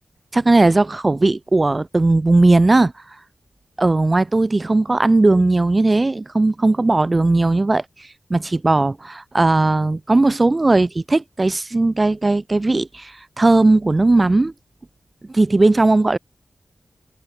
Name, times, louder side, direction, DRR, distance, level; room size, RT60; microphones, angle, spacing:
voice 1, 0.3-2.9 3.8-7.8 8.3-14.5 15.3-16.2, right 2 dB, 35° right, 3.0 m, -17 dB
cardioid pair, 50°, 0 cm